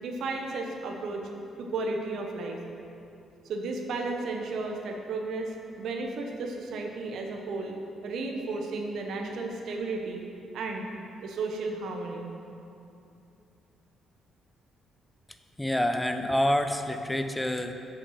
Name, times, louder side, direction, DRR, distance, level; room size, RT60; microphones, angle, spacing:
voice 1, 0.0-1.2 1.6-2.6 3.4-5.5 5.8-7.7 8.0-10.3 10.5-10.9 11.2-12.3, right 3 dB, 70° right, 2 dB, 0.9 m, -33 dB
voice 2, 15.6-17.7, left 1 dB, 5° left, 7 dB, 0.6 m, -27 dB
7.7 x 6.6 x 5.6 m, 2.7 s
cardioid pair, 90°, 0 cm